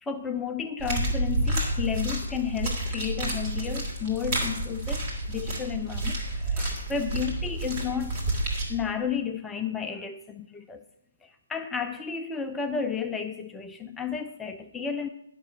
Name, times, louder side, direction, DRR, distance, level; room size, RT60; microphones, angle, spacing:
voice 1, 0.0-8.2 8.7-10.8 11.2-15.1, left 7 dB, 10° left, 6 dB, 0.3 m, -32 dB
sound 1, 0.8-8.7, right 1 dB, 35° right, 2.6 m, -30 dB
11.0 x 5.9 x 7.5 m, 0.85 s
figure-of-eight pair, 135°, 0 cm